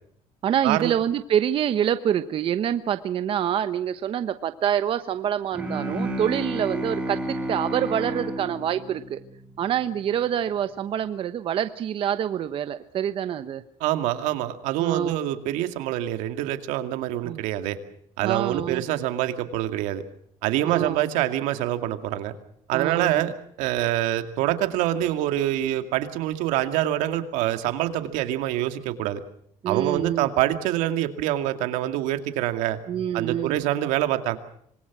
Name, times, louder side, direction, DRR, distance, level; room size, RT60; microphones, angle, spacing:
voice 1, 0.4-9.2 9.6-13.6 14.8-15.2 17.2-17.4 18.2-18.8 20.6-21.0 22.7-23.3 29.6-30.3 32.9-33.7, right 9 dB, 45° right, 11 dB, 1.0 m, -26 dB
Bowed string instrument, 5.5-9.8, right 1 dB, 10° right, 6.2 m, -31 dB
voice 2, 13.8-17.8 18.2-20.0 20.4-22.3 22.7-23.3 23.6-29.2 29.7-32.8 33.1-34.4, right 13 dB, 85° right, 8 dB, 2.3 m, -25 dB
26.0 x 21.0 x 6.1 m, 0.67 s
cardioid pair, 125°, 12 cm